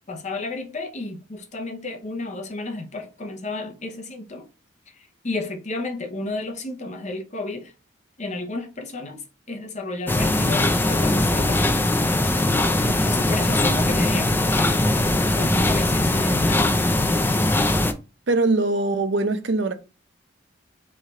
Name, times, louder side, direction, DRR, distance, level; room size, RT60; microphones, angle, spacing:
voice 1, 0.1-4.5 5.2-7.7 8.2-9.2 9.5-11.8 12.8-14.3 15.4-16.7, left 2 dB, 40° left, 0.8 m, -31 dB
sound 1, 10.1-17.9, left 1 dB, 10° left, 0.4 m, -21 dB
voice 2, 18.3-19.7, right 2 dB, 65° right, 0.6 m, -22 dB
3.7 x 3.3 x 4.3 m
head